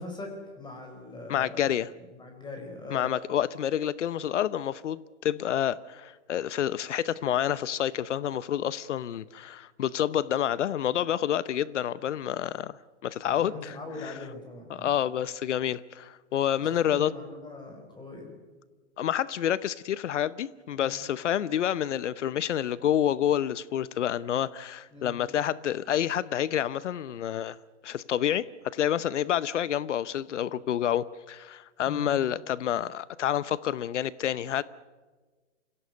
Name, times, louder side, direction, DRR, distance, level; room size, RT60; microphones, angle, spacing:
voice 1, 0.0-1.7 2.1-3.1 13.3-14.9 16.6-18.3 20.7-21.0 24.9-25.1 31.9-32.1, left 3 dB, 10° left, 4.8 m, -41 dB
voice 2, 1.3-1.9 2.9-13.8 14.0-14.1 14.7-17.1 19.0-27.6 27.8-34.6, left 10 dB, 75° left, 0.9 m, -28 dB
25.5 x 17.0 x 9.5 m
hypercardioid pair, 130°, 36 cm